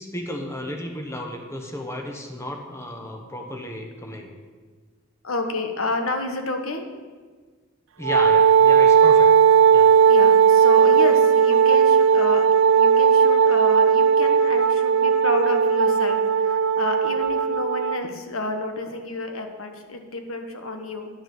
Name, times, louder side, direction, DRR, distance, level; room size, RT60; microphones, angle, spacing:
voice 1, 0.0-4.3 8.0-9.3 9.7-9.9, left 1 dB, 15° left, 2 dB, 1.1 m, -33 dB
voice 2, 5.2-6.9 10.0-21.1, left 2 dB, 80° left, 5 dB, 1.3 m, -30 dB
Wind instrument woodwind instrument, 8.0-18.0, right 6 dB, 70° right, 0.5 m, -17 dB
10.5 x 7.3 x 7.1 m, 1.5 s
head